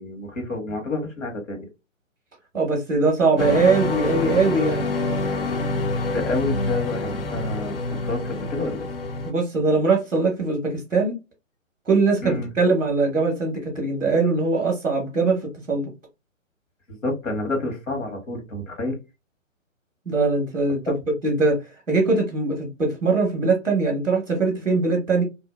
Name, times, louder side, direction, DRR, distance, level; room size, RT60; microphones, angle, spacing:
voice 1, 0.0-1.6 6.1-8.9 12.2-12.5 16.9-19.0 20.9-21.0, left 2 dB, 70° left, 1.2 m, -29 dB
voice 2, 2.5-4.9 9.2-11.1 11.9-15.4 15.7-15.9 20.0-20.9 21.2-21.6 21.9-25.2, right 3 dB, 5° right, 0.5 m, -21 dB
sound 1, 3.4-9.3, left 2 dB, 45° left, 0.5 m, -26 dB
2.5 x 2.1 x 2.3 m
figure-of-eight pair, 135°, 40 cm